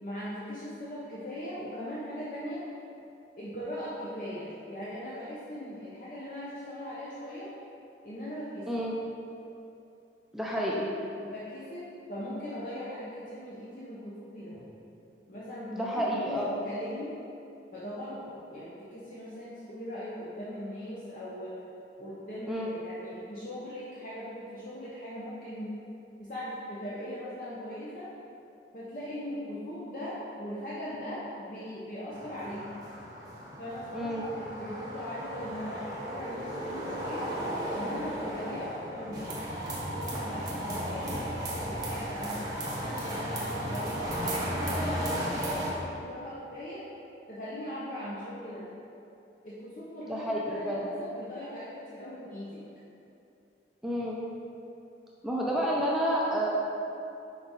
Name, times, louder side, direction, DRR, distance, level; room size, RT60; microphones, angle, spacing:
voice 1, 0.0-2.6 3.4-7.5 8.0-8.8 11.2-14.6 15.3-17.1 17.7-18.2 18.5-21.5 22.0-25.7 26.2-28.1 28.7-32.8 33.6-37.3 37.7-39.4 39.9-42.4 42.8-46.9 47.3-48.7 49.4-52.6, equal, 50° left, -9 dB, 0.8 m, -40 dB
voice 2, 8.7-9.0 10.3-10.9 15.7-16.5 22.5-22.7 33.9-34.3 50.1-50.9 53.8-54.2 55.2-56.5, equal, ahead, -5 dB, 0.5 m, -30 dB
sound 1, 32.1-45.7, equal, 20° right, 0.8 m, -35 dB
5.1 x 4.6 x 4.1 m, 2.8 s
head